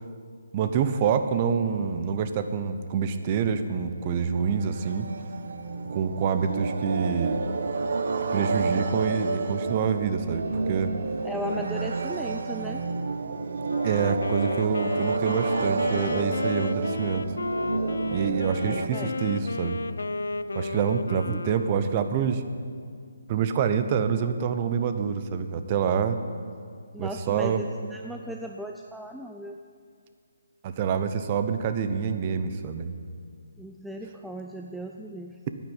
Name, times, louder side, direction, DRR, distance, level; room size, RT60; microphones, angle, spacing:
voice 1, 0.5-5.1 5.8-7.4 8.3-10.9 13.8-17.2 18.1-19.8 20.5-22.4 23.3-26.2 27.0-27.6 30.6-32.9, right 7 dB, 30° right, 9 dB, 0.9 m, -26 dB
sound 1, 3.3-18.9, right 3 dB, 65° right, 1.0 m, -30 dB
voice 2, 11.2-12.8 18.7-19.2 21.3-21.4 26.9-29.6 33.6-35.4, right 1 dB, ahead, 2 dB, 0.4 m, -37 dB
Wind instrument woodwind instrument, 13.7-22.3, left 3 dB, 80° left, 0.7 m, -33 dB
10.0 x 9.3 x 9.7 m, 2.1 s
hypercardioid pair, 155°, 0 cm